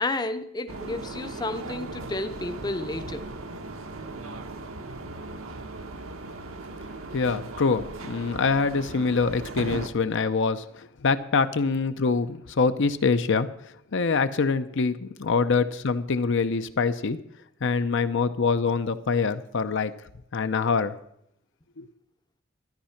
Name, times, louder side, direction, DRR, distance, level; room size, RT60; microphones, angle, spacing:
voice 1, 0.0-3.3, left 2 dB, 20° left, 9 dB, 0.6 m, -31 dB
sound 1, 0.7-9.9, right 2 dB, 75° right, 1.2 m, -38 dB
voice 2, 7.1-13.5 13.9-17.2 17.6-19.9 20.3-20.9 21.8-21.9, left 4 dB, 60° left, 10 dB, 0.6 m, -25 dB
13.0 x 10.5 x 5.8 m, 0.74 s
head